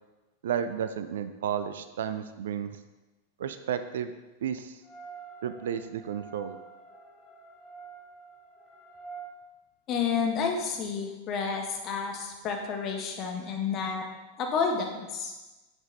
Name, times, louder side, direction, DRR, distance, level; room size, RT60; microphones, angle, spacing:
voice 1, 0.4-2.7 3.4-4.1 4.4-4.8 5.4-6.6, right 8 dB, 60° right, 10 dB, 0.6 m, -32 dB
sound 1, 4.8-9.3, right 5 dB, 10° left, 2.4 m, -47 dB
voice 2, 9.9-14.0 14.4-15.3, left 5 dB, 35° left, 2 dB, 1.6 m, -30 dB
9.4 x 7.4 x 4.0 m, 1.1 s
figure-of-eight pair, 90°, 0 cm